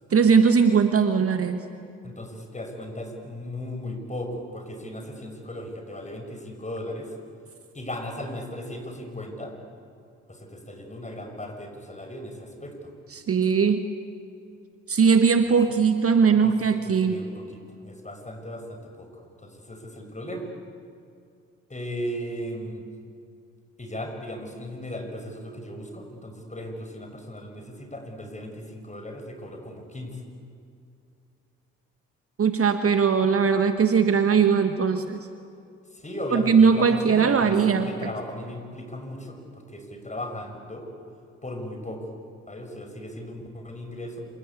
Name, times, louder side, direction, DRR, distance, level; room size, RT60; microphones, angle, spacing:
voice 1, 0.1-1.6 13.1-13.8 14.9-17.2 32.4-35.3 36.3-38.1, right 6 dB, 40° right, 8 dB, 1.6 m, -20 dB
voice 2, 2.0-7.1 7.7-9.5 10.3-12.9 15.4-15.5 16.4-16.5 16.8-19.1 19.4-20.5 21.7-22.9 23.8-30.2 35.9-40.9 41.4-42.1 42.5-44.2, left 1 dB, 20° left, 4 dB, 6.3 m, -37 dB
27.0 x 24.5 x 8.5 m, 2.5 s
figure-of-eight pair, 45°, 37 cm